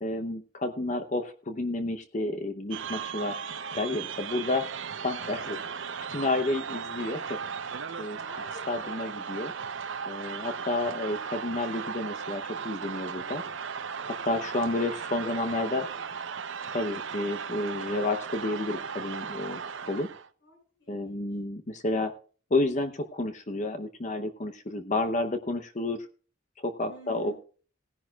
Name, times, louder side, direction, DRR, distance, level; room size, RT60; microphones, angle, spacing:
voice 1, 0.0-3.4 3.7-4.7 5.0-5.6 6.1-7.4 8.0-8.2 8.7-9.5 10.1-13.4 14.2-15.8 16.7-19.6 19.9-20.1 20.9-22.1 22.5-26.1 26.6-27.3, left 2 dB, 35° left, 7 dB, 0.8 m, -30 dB
sound 1, 2.7-20.3, right 6 dB, 65° right, 0.7 m, -36 dB
voice 2, 5.2-5.8 8.2-9.1 14.7-16.2 20.4-21.2 26.9-27.3, left 2 dB, 60° left, -3 dB, 6.7 m, -49 dB
19.0 x 10.5 x 2.4 m, 0.40 s
head